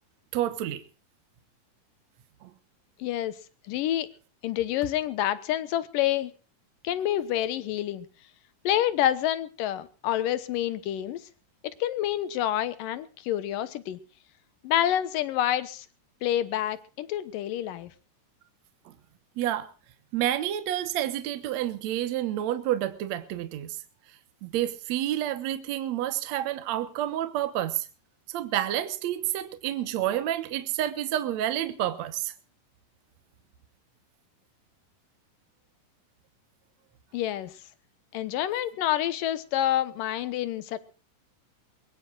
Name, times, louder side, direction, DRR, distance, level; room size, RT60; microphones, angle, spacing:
voice 1, 0.3-0.8 2.4-2.5 18.9-19.0 19.4-19.7 20.1-23.8 24.4-27.9 28.3-32.3, right 12 dB, 65° right, 2.2 m, -29 dB
voice 2, 3.0-3.3 3.7-4.1 4.4-6.3 6.8-8.1 8.6-11.2 11.8-14.0 14.6-15.9 16.2-17.9 37.1-37.5 38.1-40.8, left 12 dB, 85° left, 2.8 m, -28 dB
23.0 x 22.0 x 2.4 m
omnidirectional pair, 3.7 m